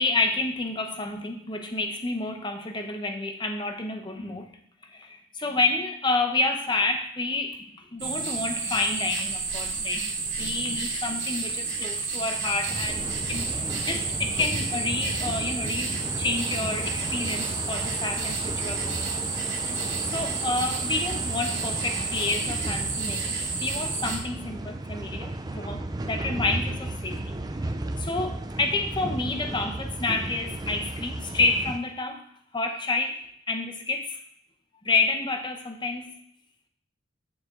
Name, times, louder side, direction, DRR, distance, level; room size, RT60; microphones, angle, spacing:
voice 1, 0.0-4.5 4.9-19.0 19.7-19.8 20.1-27.4 28.0-32.2 32.5-34.2 34.8-36.1, left 3 dB, 25° left, 6 dB, 0.8 m, -29 dB
sound 1, 8.0-24.2, right 4 dB, 85° right, 2.5 m, -31 dB
sound 2, 12.7-31.8, right 2 dB, 20° right, 0.4 m, -34 dB
9.4 x 6.2 x 3.7 m, 0.68 s
head